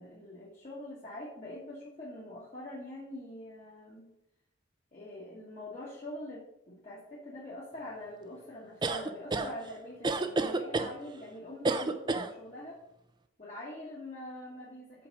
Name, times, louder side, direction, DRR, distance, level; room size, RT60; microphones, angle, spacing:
voice 1, 0.0-4.1 4.9-12.8 13.4-15.1, left 1 dB, 35° left, -6 dB, 1.2 m, -44 dB
sound 1, 8.8-9.5 10.0-10.9 11.6-12.3, right 3 dB, 20° right, 0.4 m, -29 dB
5.8 x 4.9 x 5.2 m, 0.87 s
head